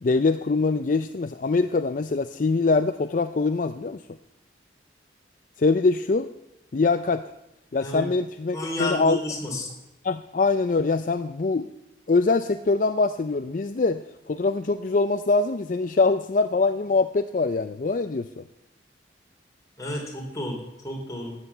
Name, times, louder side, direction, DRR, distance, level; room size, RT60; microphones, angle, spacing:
voice 1, 0.0-4.0 5.6-6.3 6.7-7.2 7.7-9.2 10.0-11.7 12.1-18.4, left 3 dB, 45° left, 10 dB, 0.4 m, -23 dB
voice 2, 8.5-9.7 19.8-21.3, left 1 dB, 20° left, -1 dB, 3.4 m, -31 dB
13.5 x 8.1 x 8.3 m, 0.92 s
head